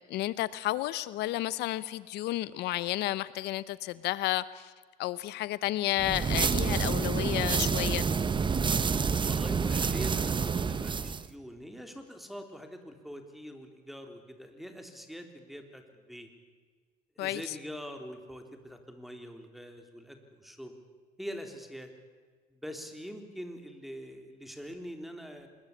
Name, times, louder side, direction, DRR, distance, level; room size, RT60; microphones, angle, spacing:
voice 1, 0.0-4.7 5.0-8.1 17.2-17.6, left 16 dB, 85° left, 17 dB, 0.8 m, -32 dB
sound 1, 6.0-11.3, right 5 dB, 30° right, 1.1 m, -28 dB
voice 2, 9.2-16.3 17.2-20.7 21.2-21.9 22.5-25.5, equal, ahead, 5 dB, 3.8 m, -44 dB
25.0 x 22.0 x 8.7 m, 1.5 s
cardioid pair, 110°, 17 cm